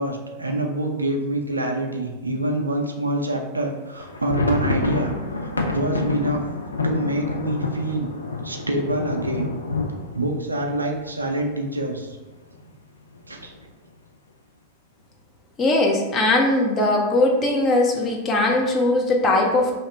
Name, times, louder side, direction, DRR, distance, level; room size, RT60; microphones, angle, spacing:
voice 1, 0.0-6.4 6.8-8.1 8.4-9.6 10.1-12.2 13.3-13.5, right 1 dB, 80° right, 2 dB, 0.4 m, -26 dB
sound 1, 3.9-11.7 12.0-12.1 12.4-12.6 13.1-13.6, left 2 dB, 75° left, 0.4 m, -28 dB
voice 2, 15.6-19.7, left 2 dB, 25° left, 0 dB, 0.7 m, -20 dB
2.9 x 2.8 x 4.3 m, 1.2 s
figure-of-eight pair, 90°, 0 cm